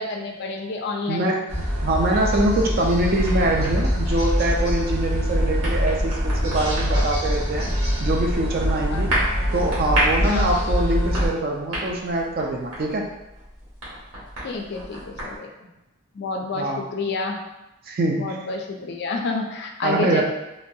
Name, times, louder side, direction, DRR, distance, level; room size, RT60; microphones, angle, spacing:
voice 1, 0.0-1.3 8.9-9.0 10.2-10.5 14.4-15.5 16.1-17.4 18.2-20.2, left 3 dB, 50° left, 2 dB, 0.3 m, -29 dB
voice 2, 1.1-7.7 8.0-9.1 9.5-13.0 16.6-16.8 17.9-18.4 19.8-20.2, right 2 dB, 45° right, 1 dB, 0.4 m, -24 dB
sound 1, 1.5-11.3, equal, 85° right, 1.2 m, -24 dB
sound 2, 2.1-15.4, right 1 dB, 70° right, 1.1 m, -32 dB
3.1 x 2.2 x 2.6 m, 0.96 s
head